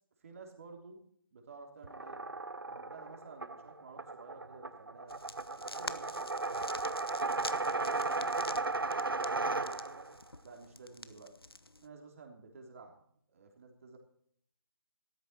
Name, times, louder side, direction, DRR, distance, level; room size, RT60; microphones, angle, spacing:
voice 1, 0.2-1.0 1.3-2.2 2.6-5.2 5.7-6.7 7.1-10.1 10.4-11.3 11.8-13.0 13.3-14.0, right 4 dB, 35° right, 3 dB, 3.3 m, -52 dB
sound 1, 1.8-10.1, right 3 dB, 70° right, 0.8 m, -35 dB
sound 2, 5.1-11.9, left 2 dB, 85° left, 0.9 m, -47 dB
14.0 x 13.5 x 4.3 m, 0.65 s
figure-of-eight pair, 150°, 12 cm